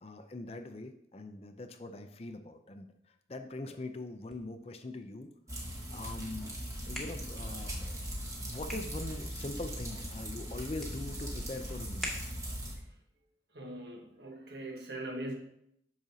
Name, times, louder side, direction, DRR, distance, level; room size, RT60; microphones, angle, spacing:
voice 1, 0.0-2.9 3.3-5.3 5.9-7.8 8.4-12.1, left 2 dB, 35° left, 8 dB, 0.5 m, -42 dB
sound 1, 4.0-12.7, equal, ahead, 1.2 m, -48 dB
sound 2, 5.5-12.7, equal, 20° right, 1.4 m, -40 dB
voice 2, 13.5-15.3, right 1 dB, 70° right, 2 dB, 1.4 m, -41 dB
8.8 x 6.1 x 2.8 m, 0.76 s
head